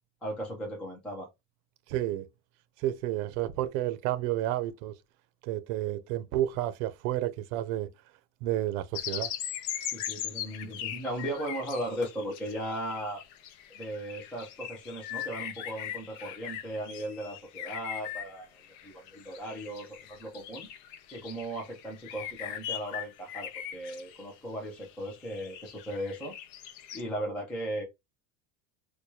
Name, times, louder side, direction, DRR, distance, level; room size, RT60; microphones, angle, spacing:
voice 1, 0.2-1.3 9.9-13.2 13.7-20.7 21.1-26.4 26.9-27.8, right 1 dB, 5° left, 0.3 m, -37 dB
voice 2, 1.9-2.3 2.8-4.9 5.5-7.9 8.4-9.3, right 13 dB, 70° right, 0.7 m, -30 dB
sound 1, 8.9-24.3 24.8-27.0, left 10 dB, 55° left, 0.6 m, -40 dB
4.5 x 2.3 x 2.7 m
cardioid pair, 175°, 43 cm